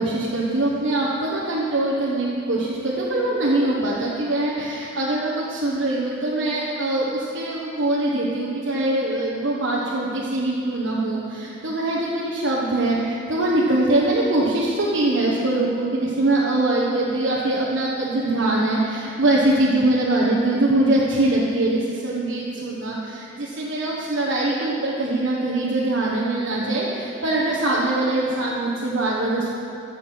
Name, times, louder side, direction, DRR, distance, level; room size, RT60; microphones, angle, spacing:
voice 1, 0.0-29.5, right 2 dB, 65° right, -5 dB, 1.3 m, -22 dB
14.5 x 7.1 x 5.8 m, 2.7 s
head